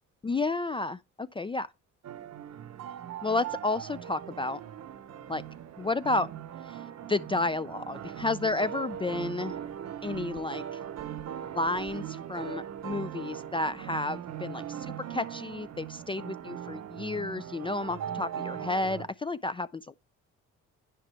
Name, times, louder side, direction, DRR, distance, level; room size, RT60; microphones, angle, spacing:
voice 1, 0.2-1.7 3.2-4.6 5.3-5.4 5.8-6.3 6.7-6.8 7.1-9.5 10.0-10.6 11.5-19.9, left 2 dB, 20° left, 0.3 m, -31 dB
sound 1, 2.0-19.1, right 10 dB, 60° right, 0.9 m, -40 dB
10.0 x 5.0 x 3.4 m
cardioid pair, 90°, 30 cm